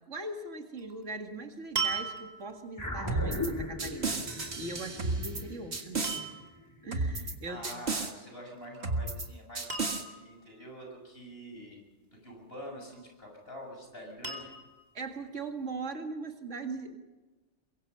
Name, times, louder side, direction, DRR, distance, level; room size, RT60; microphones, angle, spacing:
voice 1, 0.1-4.2 4.6-6.3 6.8-7.8 14.9-17.0, right 3 dB, 75° right, 5 dB, 2.3 m, -40 dB
sound 1, 0.8-1.0 1.8-2.6 5.1-5.4 6.0-6.6 8.5-8.9 9.2-9.3 9.7-10.4 12.7-13.3 14.2-14.9 15.6-15.7, right 5 dB, 35° right, 2.9 m, -37 dB
sound 2, 2.8-7.4, left 1 dB, 15° left, 2.6 m, -38 dB
sound 3, 3.1-3.5 3.8-5.4 5.7-6.2 6.9-7.3 7.6-8.1 8.8-9.3 9.6-10.0, right 3 dB, 60° right, 2.0 m, -33 dB
voice 2, 7.5-11.8 12.2-14.5, equal, 55° left, 1 dB, 7.1 m, -46 dB
23.0 x 23.0 x 5.6 m, 1.2 s
omnidirectional pair, 1.3 m